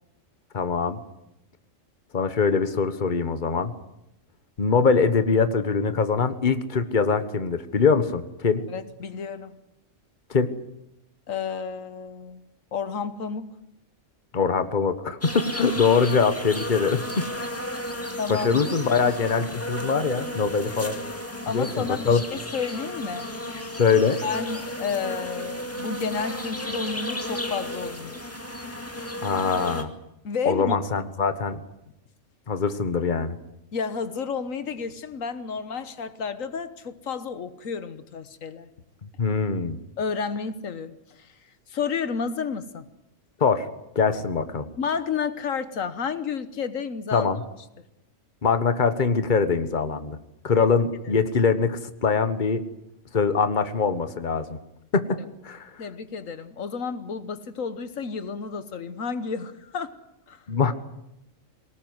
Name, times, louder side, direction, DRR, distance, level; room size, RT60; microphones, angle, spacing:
voice 1, 0.5-1.0 2.1-3.7 4.6-8.6 10.3-10.5 14.3-17.0 18.3-20.9 21.5-22.2 23.8-24.2 29.2-29.9 30.4-31.6 32.5-33.4 39.2-39.8 43.4-43.7 43.9-44.7 47.1-47.4 48.4-50.2 50.4-52.6 53.1-54.5 54.9-55.0 55.4-55.7 60.5-60.7, left 5 dB, 40° left, 10 dB, 1.5 m, -23 dB
voice 2, 8.7-9.5 11.3-12.4 12.7-13.5 18.2-18.6 21.5-23.3 24.2-28.2 30.2-30.8 33.7-38.7 39.2-39.3 40.0-41.3 41.7-42.9 44.8-47.3 50.6-50.7 55.8-60.0 60.3-60.4, left 5 dB, 85° left, 12 dB, 1.6 m, -31 dB
sound 1, 15.2-29.8, left 1 dB, 10° left, 2.2 m, -33 dB
23.5 x 19.0 x 9.6 m, 0.85 s
omnidirectional pair, 1.3 m